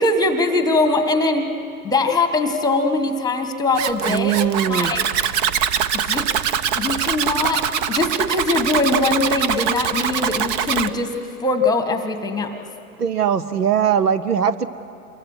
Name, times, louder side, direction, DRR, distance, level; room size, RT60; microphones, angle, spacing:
voice 1, 0.0-1.5 1.8-4.3 4.7-5.1 5.9-6.3 6.8-12.7, left 2 dB, 10° left, 8 dB, 1.5 m, -21 dB
Zipper (clothing), 3.7-10.9, right 8 dB, 25° right, 0.6 m, -23 dB
voice 2, 4.1-4.9 13.0-14.7, right 8 dB, 80° right, 13 dB, 1.0 m, -20 dB
28.0 x 23.0 x 6.3 m, 2.9 s
figure-of-eight pair, 100°, 46 cm